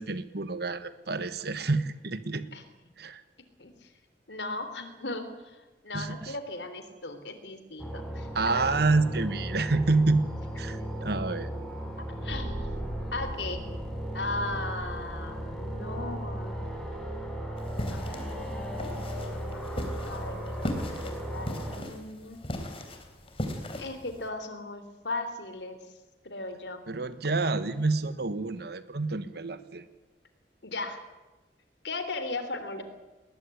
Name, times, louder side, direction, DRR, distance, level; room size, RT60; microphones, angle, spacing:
voice 1, 0.0-2.4 3.0-3.2 5.9-6.3 8.3-10.3 10.6-11.5 26.9-29.8, right 3 dB, 65° right, 12 dB, 1.3 m, -28 dB
voice 2, 3.6-3.9 4.3-8.6 10.7-10.8 12.2-12.7 13.1-13.6 14.1-16.6 17.9-22.4 23.8-25.8 26.2-26.8 30.6-31.0 31.8-32.8, left 2 dB, 80° left, 9 dB, 3.4 m, -37 dB
sound 1, 7.8-21.8, equal, 5° left, 5.7 m, -36 dB
sound 2, 17.6-24.3, equal, 35° left, 3.5 m, -38 dB
20.0 x 20.0 x 9.9 m, 1.1 s
head